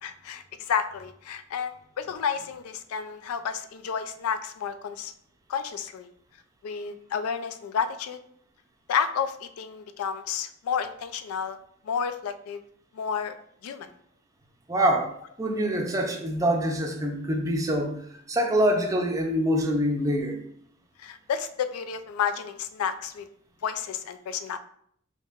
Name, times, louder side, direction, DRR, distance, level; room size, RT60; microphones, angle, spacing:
voice 1, 0.0-5.1 5.5-6.1 6.6-8.2 8.9-11.6 11.8-12.6 12.9-13.4 13.6-13.9 21.0-23.3 23.6-24.6, left 7 dB, 90° left, 11 dB, 0.3 m, -31 dB
voice 2, 14.7-15.1 15.4-18.0 18.3-20.4, equal, 15° right, 2 dB, 0.4 m, -25 dB
4.4 x 2.9 x 2.4 m, 0.67 s
head